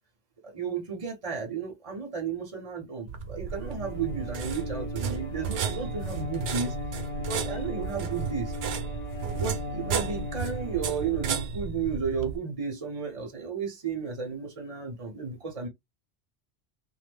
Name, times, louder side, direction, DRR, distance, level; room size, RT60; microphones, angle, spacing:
voice 1, 0.4-6.8 7.2-8.5 9.4-15.7, right 5 dB, 35° right, 0.7 m, -33 dB
sound 1, 3.1-12.4, right 7 dB, 70° right, 0.8 m, -33 dB
Bowed string instrument, 3.5-11.9, left 3 dB, 40° left, 1.1 m, -39 dB
3.1 x 2.1 x 3.4 m
omnidirectional pair, 1.1 m